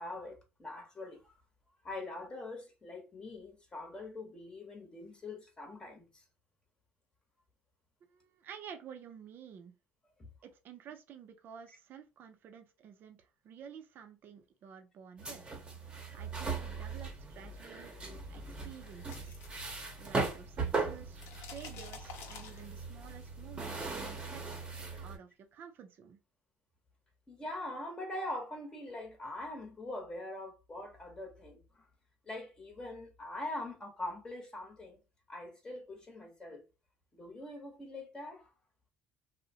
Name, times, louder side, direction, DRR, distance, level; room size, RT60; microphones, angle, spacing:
voice 1, 0.0-1.3 1.8-6.2 27.3-31.8 32.2-35.0 35.3-36.6 37.1-38.5, left 2 dB, 20° left, 0.9 m, -43 dB
voice 2, 8.0-9.7 10.4-15.4 15.8-19.4 20.0-26.2, right 8 dB, 50° right, 0.4 m, -51 dB
sound 1, 15.2-25.2, right 4 dB, 20° right, 0.8 m, -39 dB
sound 2, 18.6-20.3 20.6-23.0, left 6 dB, 75° left, 0.6 m, -50 dB
2.7 x 2.1 x 2.7 m
cardioid pair, 110°, 4 cm